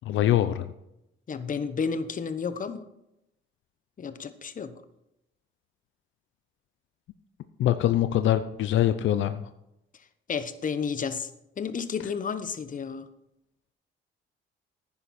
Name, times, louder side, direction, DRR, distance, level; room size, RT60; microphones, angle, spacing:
voice 1, 0.1-0.7 7.6-9.4, left 12 dB, 75° left, 11 dB, 0.6 m, -23 dB
voice 2, 1.3-2.8 4.0-4.7 10.3-11.3 11.6-13.1, left 6 dB, 40° left, 11 dB, 1.0 m, -31 dB
10.5 x 9.9 x 4.3 m, 0.85 s
cardioid pair, 90°, 20 cm